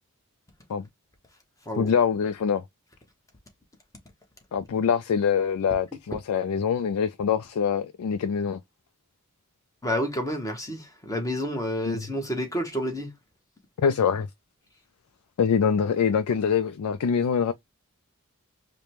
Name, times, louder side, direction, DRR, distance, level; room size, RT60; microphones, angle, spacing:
voice 1, 1.8-2.6 4.5-8.6 11.9-12.0 13.8-14.3 15.4-17.5, left 7 dB, 90° left, 0.4 m, -24 dB
voice 2, 9.8-13.1, equal, 15° left, 1.0 m, -29 dB
5.0 x 2.1 x 2.9 m
head